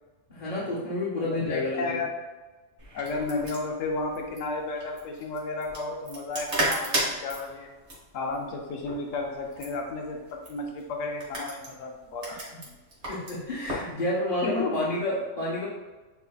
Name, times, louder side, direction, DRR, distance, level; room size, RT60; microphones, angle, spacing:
voice 1, 0.3-2.0 12.3-12.4 13.1-15.7, left 1 dB, 40° left, -7 dB, 1.0 m, -29 dB
voice 2, 1.2-2.1 2.9-7.7 8.1-12.8 14.4-14.7, left 3 dB, 80° left, 2 dB, 1.0 m, -33 dB
sound 1, 2.8-13.9, right 1 dB, 60° right, 1.7 m, -35 dB
8.0 x 2.8 x 2.3 m, 1.2 s
omnidirectional pair, 1.3 m